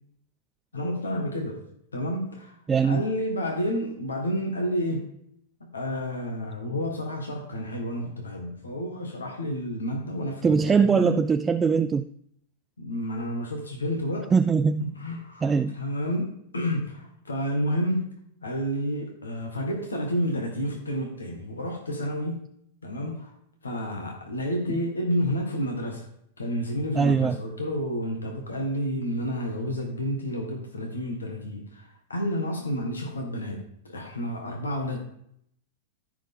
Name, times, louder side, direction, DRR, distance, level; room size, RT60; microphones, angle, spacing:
voice 1, 0.7-1.6 1.9-2.6 2.8-5.1 5.7-11.2 12.8-14.3 14.8-18.1 18.4-22.4 22.8-23.4 23.6-26.1 26.4-35.0, equal, 80° left, 2 dB, 1.8 m, -30 dB
voice 2, 2.7-3.0 10.4-12.1 14.3-14.9 15.4-15.8 27.0-27.4, right 5 dB, 15° right, 10 dB, 0.3 m, -21 dB
14.5 x 4.9 x 3.8 m, 0.70 s
figure-of-eight pair, 100°, 0 cm